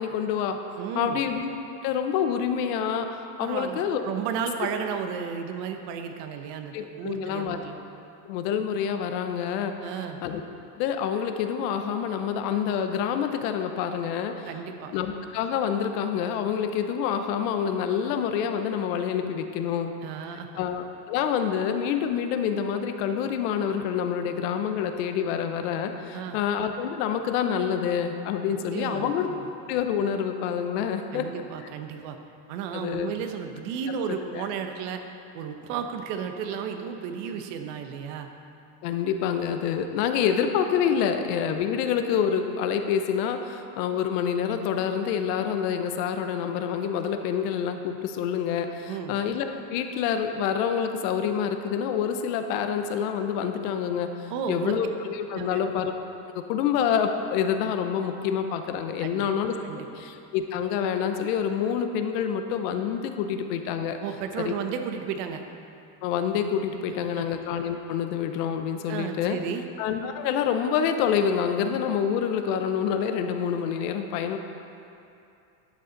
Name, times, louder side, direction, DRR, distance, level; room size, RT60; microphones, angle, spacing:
voice 1, 0.0-0.6 0.9-1.5 1.8-4.0 6.7-7.6 8.2-9.8 10.2-10.4 10.8-14.5 14.9-19.9 20.6-29.3 29.7-31.3 32.7-33.1 34.1-34.5 38.8-55.9 56.3-59.6 59.9-64.0 64.4-64.5 66.0-69.4 69.8-74.4, left 8 dB, 70° left, 7 dB, 0.9 m, -27 dB
voice 2, 0.8-1.2 3.4-7.8 9.8-10.2 14.5-14.9 20.0-20.6 26.1-26.4 28.7-29.5 31.1-32.2 32.5-35.0 35.3-38.3 48.9-49.2 54.3-54.7 55.3-55.6 59.0-59.3 59.6-59.9 64.0-65.4 67.0-67.2 68.9-69.6, right 7 dB, 70° right, 6 dB, 1.0 m, -33 dB
11.5 x 6.8 x 3.9 m, 2.7 s
supercardioid pair, 130°, 50 cm